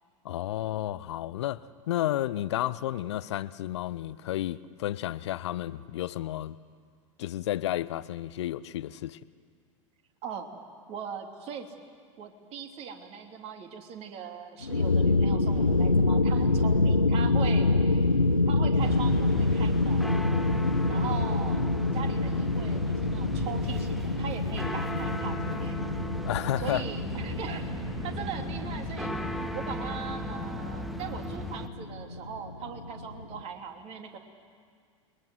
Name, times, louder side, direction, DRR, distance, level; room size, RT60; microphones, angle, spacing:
voice 1, 0.2-6.6 7.2-9.2 26.2-26.8, left 13 dB, 55° left, 0.7 m, -32 dB
voice 2, 10.9-11.7 12.2-18.1 18.5-20.2 20.9-25.8 26.6-27.7 28.0-29.1 29.5-34.2, right 7 dB, 35° right, 2.8 m, -40 dB
sound 1, 14.6-33.4, left 2 dB, 85° left, 1.1 m, -27 dB
sound 2, 18.8-31.7, equal, ahead, 1.1 m, -37 dB
29.0 x 22.0 x 7.9 m
figure-of-eight pair, 85°, 17 cm